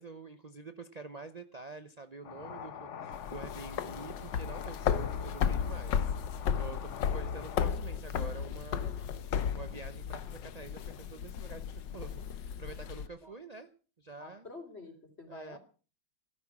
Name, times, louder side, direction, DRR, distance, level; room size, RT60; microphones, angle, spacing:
voice 1, 0.0-6.1 6.5-13.7 14.0-14.5 15.3-15.6, right 3 dB, 60° right, 9 dB, 0.4 m, -47 dB
sound 1, 2.2-7.7, left 8 dB, 50° left, 0.9 m, -45 dB
sound 2, 3.1-13.1, left 7 dB, 70° left, 1.6 m, -34 dB
voice 2, 14.2-15.6, left 2 dB, 30° left, 5 dB, 3.8 m, -48 dB
15.0 x 13.5 x 6.0 m, 0.38 s
omnidirectional pair, 2.1 m